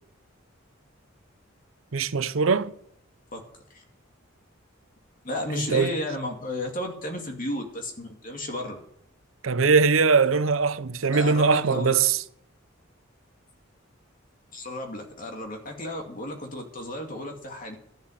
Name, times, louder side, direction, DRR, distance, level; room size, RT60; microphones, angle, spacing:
voice 1, 1.9-2.7 5.5-5.9 9.4-12.2, right 5 dB, 85° right, 0.7 m, -21 dB
voice 2, 5.2-8.8 11.1-11.9 14.5-17.8, left 1 dB, 40° left, 2.4 m, -33 dB
13.0 x 7.5 x 9.2 m
head